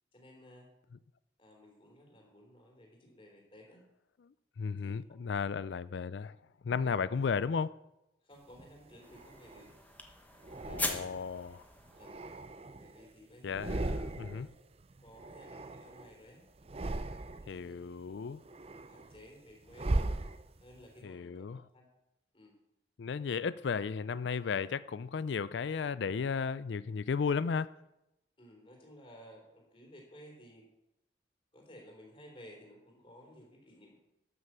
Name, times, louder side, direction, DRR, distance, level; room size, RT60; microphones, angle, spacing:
voice 1, 0.1-0.7 1.4-3.8 4.8-4.9 6.8-7.0 8.2-9.7 10.5-11.2 11.8-12.2 12.8-13.8 14.4-14.5 15.0-16.4 17.5-18.2 18.8-20.0 20.6-21.5 21.7-21.9 22.3-22.5 28.4-30.7 31.5-34.0, equal, 30° left, 3.5 m, -56 dB
voice 2, 4.2-6.4 6.6-7.7 10.7-11.7 13.4-14.5 17.4-18.4 21.0-21.6 23.0-27.7, left 5 dB, 70° left, 0.4 m, -34 dB
sound 1, 8.5-9.8 10.4-11.4 11.8-13.1 13.4-14.5 14.8-16.2 16.6-17.6 18.1-20.8, right 2 dB, 30° right, 0.5 m, -38 dB
sound 2, 9.0-12.6, left 2 dB, 10° left, 1.1 m, -41 dB
12.5 x 6.5 x 7.3 m
head